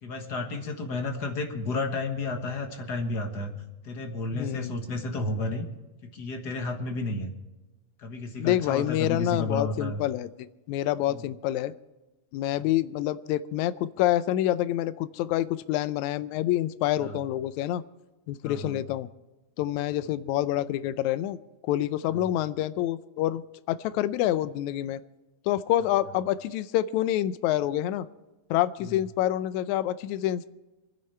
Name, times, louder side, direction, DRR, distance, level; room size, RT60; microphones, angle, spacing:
voice 1, 0.0-3.5 3.8-5.6 6.0-7.3 8.0-10.0 11.1-11.2 17.0-17.2 18.4-18.8 22.1-22.3 28.8-29.0, left 2 dB, 45° left, 5 dB, 1.5 m, -32 dB
voice 2, 4.3-4.8 8.4-10.3 10.7-11.7 12.3-17.8 18.3-19.1 19.6-21.4 21.6-23.4 23.7-25.0 25.5-28.1 28.5-30.5, left 13 dB, 80° left, 14 dB, 1.9 m, -27 dB
24.5 x 10.5 x 4.4 m, 1.1 s
omnidirectional pair, 3.5 m